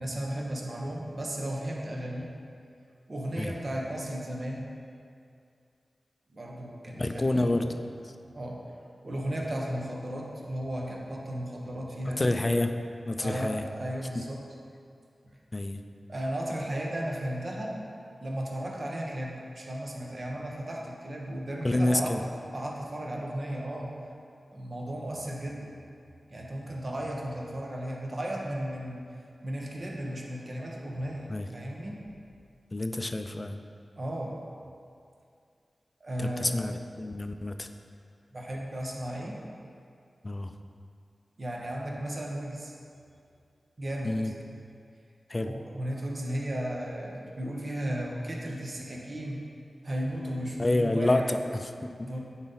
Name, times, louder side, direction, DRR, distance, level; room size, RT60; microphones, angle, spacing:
voice 1, 0.0-2.3 3.1-4.6 6.3-7.6 8.3-8.7 9.0-12.3 13.2-14.4 16.1-17.9 18.2-24.0 24.5-25.8 26.3-29.1 29.4-32.1 34.0-34.4 36.0-36.7 38.3-39.4 41.4-42.7 43.8-44.3 45.4-49.4 49.8-51.4 52.0-52.2, right 1 dB, 50° right, -1 dB, 1.0 m, -35 dB
voice 2, 7.0-7.7 12.1-12.7 13.1-13.6 15.5-15.8 21.6-22.2 31.3-31.5 32.7-33.6 36.2-37.7 40.2-40.5 44.0-44.3 45.3-45.5 50.6-51.9, left 2 dB, 35° left, 7 dB, 0.4 m, -28 dB
9.6 x 4.0 x 4.0 m, 2.4 s
wide cardioid pair, 65°, 0 cm